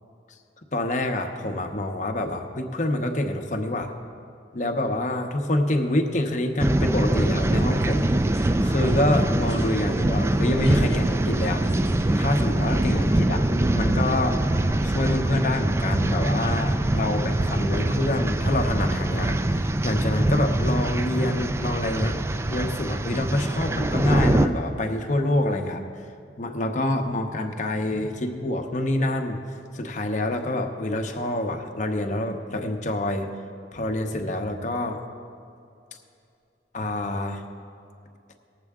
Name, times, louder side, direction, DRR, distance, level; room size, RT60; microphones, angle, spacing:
voice 1, 0.7-3.9 4.5-8.1 8.6-11.7 12.1-14.4 14.8-22.2 22.5-25.9 26.4-29.4 29.7-33.3 33.7-35.0 36.7-37.4, left 1 dB, 45° left, 4 dB, 0.8 m, -26 dB
sound 1, 6.6-24.5, right 1 dB, 15° right, 0.3 m, -23 dB
sound 2, 7.2-13.2, left 1 dB, 75° left, 1.0 m, -42 dB
19.0 x 7.6 x 3.6 m, 2.6 s
head